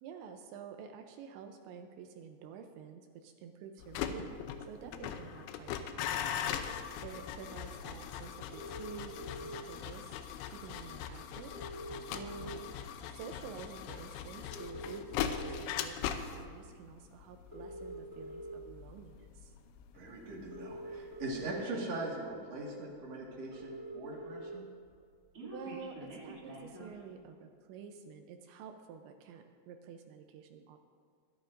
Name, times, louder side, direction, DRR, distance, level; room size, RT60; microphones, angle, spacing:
voice 1, 0.0-4.4 4.7-6.4 7.0-10.2 10.5-11.5 12.1-12.6 13.1-19.5 25.4-30.8, right 6 dB, 80° right, 4 dB, 2.7 m, -49 dB
sound 1, 3.8-20.8 21.1-21.5, left 8 dB, 80° left, 3.0 m, -40 dB
sound 2, 8.5-9.5 10.7-10.8 11.1-11.2 11.4-12.8 13.3-13.5 14.4-15.5 16.2-16.5 17.4-18.5 19.7-19.8 20.3-21.5 22.2-22.3 22.6-22.7 22.9-23.0 23.2-24.5 24.8-27.0, equal, 30° right, 1.7 m, -46 dB
voice 2, 19.9-24.7, right 2 dB, 60° right, -3 dB, 1.6 m, -41 dB
23.0 x 12.0 x 2.6 m, 2.1 s
omnidirectional pair, 5.9 m